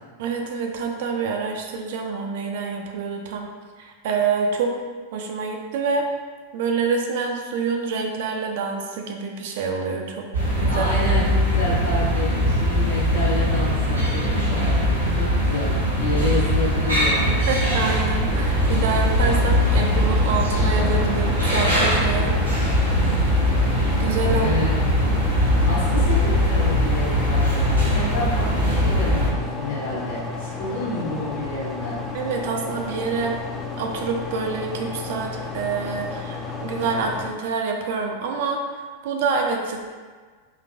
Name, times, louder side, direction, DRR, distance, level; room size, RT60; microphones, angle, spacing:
voice 1, 0.2-3.5 3.8-4.7 5.1-6.0 6.5-10.3 10.6-10.8 17.5-22.8 24.0-24.7 32.1-33.4 33.8-39.9, right 5 dB, 55° right, 2 dB, 0.4 m, -27 dB
sound 1, 10.3-29.3, equal, 85° right, 0.9 m, -21 dB
voice 2, 10.7-17.4 24.3-24.7 25.0-25.2 25.6-32.0, left 1 dB, 65° left, -7 dB, 1.1 m, -29 dB
sound 2, 18.3-37.3, left 3 dB, 20° left, 0.4 m, -32 dB
3.9 x 2.3 x 2.5 m, 1.5 s
figure-of-eight pair, 90°, 0 cm